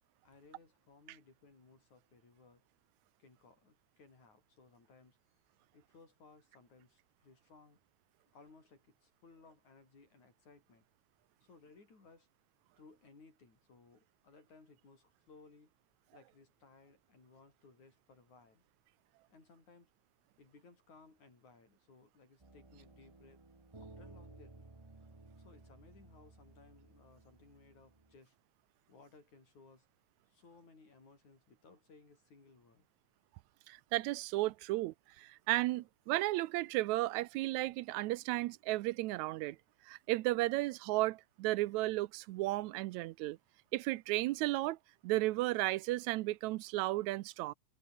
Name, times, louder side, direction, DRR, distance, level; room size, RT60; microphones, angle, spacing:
voice 1, 0.2-2.6 3.2-5.2 5.7-7.8 8.3-10.9 11.4-12.3 12.8-15.7 16.1-18.6 19.3-19.9 20.4-23.4 23.8-24.8 25.4-28.4 28.9-29.9 30.3-32.9, left 4 dB, 80° left, 8.0 m, -62 dB
sound 1, 22.4-28.2, right 2 dB, 20° right, 0.7 m, -57 dB
voice 2, 33.7-39.6 39.9-43.4 43.7-44.8 45.0-47.5, right 18 dB, 85° right, 2.0 m, -34 dB
omnidirectional pair, 3.3 m